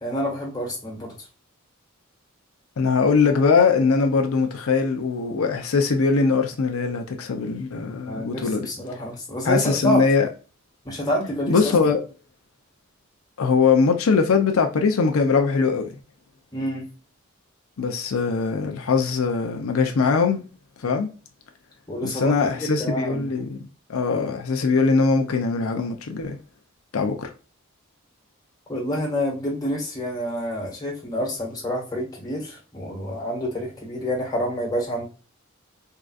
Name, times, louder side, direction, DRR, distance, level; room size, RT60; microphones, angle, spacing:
voice 1, 0.0-1.3 8.0-10.0 10.8-11.7 16.5-16.9 21.9-23.5 28.7-35.0, equal, 20° left, 1.4 m, -28 dB
voice 2, 2.8-8.7 9.4-10.3 11.5-12.0 13.4-16.0 17.8-20.4 20.8-21.1 22.0-23.6 23.9-26.4 26.9-27.3, left 4 dB, 85° left, 0.5 m, -21 dB
3.7 x 2.4 x 2.3 m
head